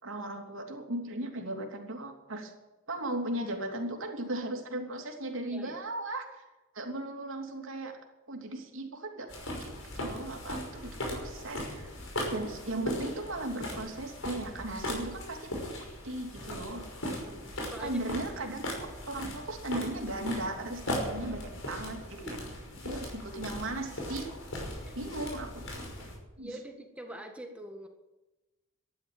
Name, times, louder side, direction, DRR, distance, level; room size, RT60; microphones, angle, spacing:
voice 1, 0.0-2.5 2.9-6.4 6.7-8.0 8.3-9.3 9.6-9.7 10.0-11.9 12.3-16.9 17.8-18.6 19.1-22.2 22.8-24.3 24.9-25.6 26.0-26.1 26.4-26.5, right 1 dB, 70° right, 2 dB, 3.1 m, -37 dB
voice 2, 5.5-5.8 17.6-18.0 22.2-22.4 24.8-24.9 26.4-27.9, equal, 5° right, 3 dB, 1.6 m, -44 dB
sound 1, 9.3-26.2, left 1 dB, 75° left, 5.7 m, -38 dB
13.5 x 11.0 x 9.0 m, 1.1 s
head